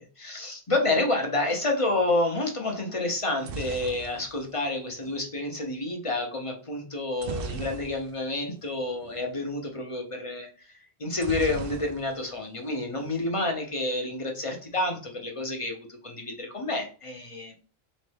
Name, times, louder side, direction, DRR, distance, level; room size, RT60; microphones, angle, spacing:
voice 1, 0.2-17.6, left 2 dB, 30° left, 2 dB, 1.0 m, -29 dB
sound 1, 3.1-5.2 7.2-8.3 8.6-8.8 9.0-9.2 11.2-12.3 12.6-13.2, right 5 dB, 65° right, 0.7 m, -38 dB
4.2 x 3.1 x 3.4 m, 0.37 s
omnidirectional pair, 1.1 m